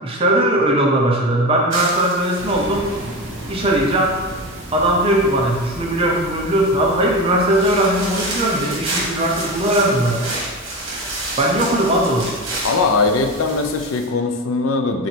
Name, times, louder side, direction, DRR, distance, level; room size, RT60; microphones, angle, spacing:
voice 1, 0.0-2.9 3.5-4.2 4.7-10.3 11.4-12.4, right 1 dB, 25° right, -1 dB, 0.6 m, -18 dB
sound 1, 1.7-14.1, right 2 dB, 65° right, 1.3 m, -31 dB
sound 2, 2.4-13.9, right 1 dB, 80° right, 0.9 m, -36 dB
voice 2, 12.6-15.1, left 3 dB, 75° left, 6 dB, 0.4 m, -20 dB
3.9 x 3.1 x 4.4 m, 1.4 s
head